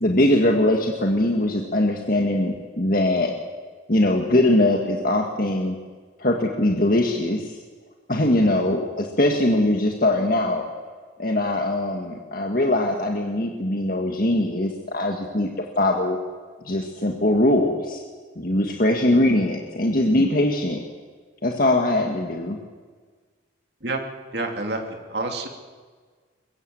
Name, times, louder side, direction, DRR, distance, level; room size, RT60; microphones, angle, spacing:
voice 1, 0.0-3.3 3.9-5.8 6.2-7.6 8.1-10.7 11.2-16.2 16.6-18.0 18.4-20.8 21.4-22.6, left 1 dB, 45° left, 2 dB, 1.9 m, -21 dB
voice 2, 8.4-8.7 23.8-24.0 24.3-25.5, right 2 dB, 55° right, 3 dB, 2.9 m, -29 dB
23.0 x 22.0 x 7.9 m, 1.5 s
head